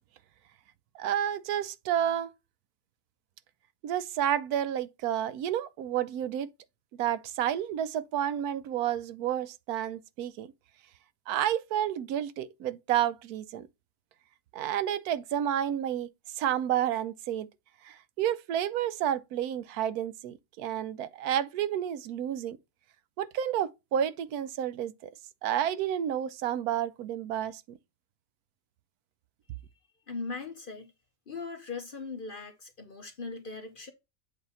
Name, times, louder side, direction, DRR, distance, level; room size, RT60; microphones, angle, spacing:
voice 1, 0.9-2.3 3.8-6.5 7.0-10.5 11.3-13.7 14.5-16.1 16.4-17.5 17.8-22.6 23.2-25.1 25.4-27.8, right 10 dB, 80° right, 1.1 m, -30 dB
voice 2, 30.1-30.9 31.3-33.9, left 4 dB, 45° left, 0.8 m, -39 dB
8.0 x 2.8 x 5.5 m
omnidirectional pair, 1.6 m